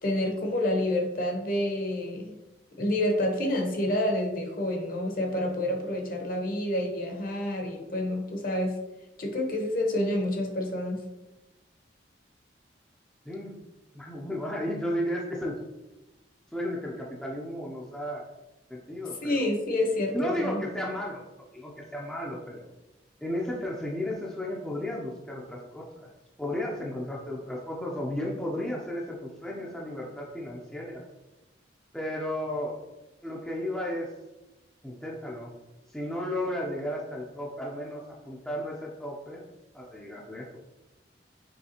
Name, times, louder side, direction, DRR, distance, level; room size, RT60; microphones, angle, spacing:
voice 1, 0.0-2.3 2.7-8.8 9.2-11.0 19.2-20.6, left 1 dB, 45° left, 2 dB, 0.9 m, -28 dB
voice 2, 13.3-13.7 13.9-15.6 16.5-18.2 18.7-19.5 20.1-21.3 21.5-22.7 23.2-26.1 26.4-31.1 31.9-32.8 33.2-34.1 34.8-35.6 35.9-39.5 39.7-40.5, left 1 dB, 5° left, -3 dB, 0.4 m, -34 dB
5.4 x 3.3 x 2.9 m, 1.0 s
head